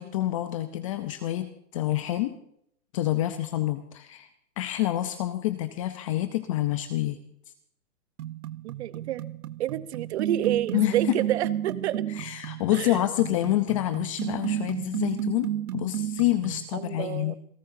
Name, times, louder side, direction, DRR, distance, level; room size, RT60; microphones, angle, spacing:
voice 1, 0.0-2.3 2.9-4.3 4.6-7.2 10.7-10.9 12.2-17.4, left 15 dB, 25° left, 10 dB, 0.5 m, -27 dB
sound 1, 8.2-16.7, right 11 dB, 80° right, 0.7 m, -32 dB
voice 2, 8.6-9.2 9.6-12.0 12.7-13.0 16.7-17.4, right 12 dB, 45° right, 16 dB, 0.8 m, -29 dB
27.5 x 13.0 x 2.7 m, 0.70 s
hypercardioid pair, 145°, 45 cm